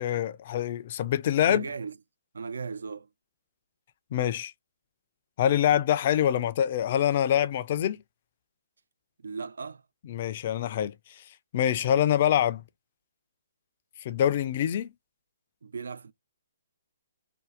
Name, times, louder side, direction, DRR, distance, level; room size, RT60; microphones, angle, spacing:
voice 1, 0.0-1.7 4.1-4.5 5.4-8.0 10.1-10.9 11.5-12.6 14.0-14.9, left 10 dB, 45° left, 0.4 m, -25 dB
voice 2, 1.4-2.0 2.3-3.1 9.2-9.8 15.6-16.1, right 5 dB, 70° right, 0.4 m, -36 dB
2.7 x 2.2 x 3.5 m
figure-of-eight pair, 135°, 0 cm